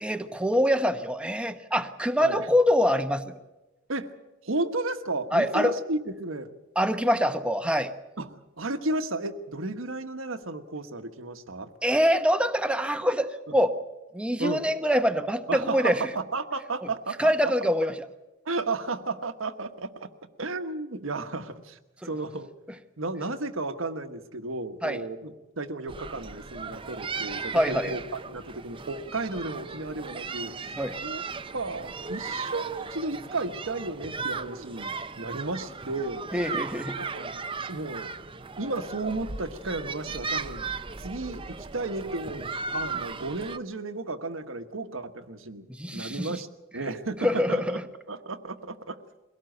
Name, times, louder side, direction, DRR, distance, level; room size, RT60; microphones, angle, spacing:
voice 1, 0.0-3.3 5.3-5.7 6.8-7.9 11.8-13.7 14.1-16.0 17.2-17.9 24.8-25.0 27.5-27.9 30.8-30.9 36.3-37.0 45.7-46.4 47.2-47.8, equal, 5° right, 8 dB, 1.0 m, -24 dB
voice 2, 4.4-6.5 8.2-11.7 14.4-14.6 15.5-17.5 18.4-20.1 20.4-21.8 22.0-22.5 23.0-31.2 31.5-36.2 37.0-37.4 37.7-38.1 38.6-40.7 41.0-46.5 46.7-47.8 48.1-49.0, right 2 dB, 80° right, 8 dB, 1.4 m, -33 dB
sound 1, 25.9-43.6, right 4 dB, 25° right, 0.7 m, -36 dB
22.0 x 17.5 x 8.0 m, 1.1 s
head